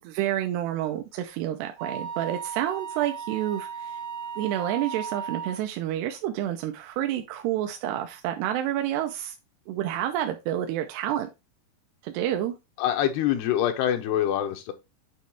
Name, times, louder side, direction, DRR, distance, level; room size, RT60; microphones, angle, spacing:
voice 1, 0.0-4.0 4.4-9.4 9.7-11.3 12.0-12.5, right 12 dB, 85° right, 2.7 m, -29 dB
Wind instrument woodwind instrument, 1.8-5.6, right 6 dB, 70° right, 1.8 m, -36 dB
voice 2, 12.8-14.7, left 11 dB, 85° left, 2.8 m, -25 dB
8.6 x 3.1 x 4.6 m
omnidirectional pair, 4.7 m